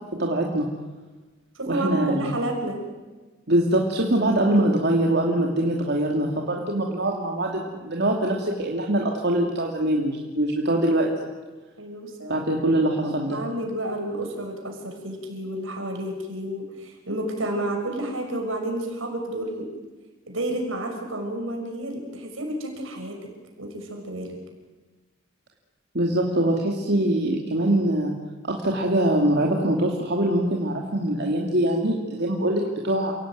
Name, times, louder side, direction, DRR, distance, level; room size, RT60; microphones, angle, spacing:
voice 1, 0.2-0.7 1.7-2.3 3.5-11.1 12.3-13.4 25.9-28.1 28.4-33.1, right 1 dB, 55° right, -1 dB, 2.8 m, -23 dB
voice 2, 1.5-2.8 11.8-12.4 13.0-19.7 20.3-23.2 23.6-24.3, right 1 dB, 75° right, 2 dB, 6.5 m, -30 dB
29.5 x 17.5 x 9.5 m, 1.3 s
head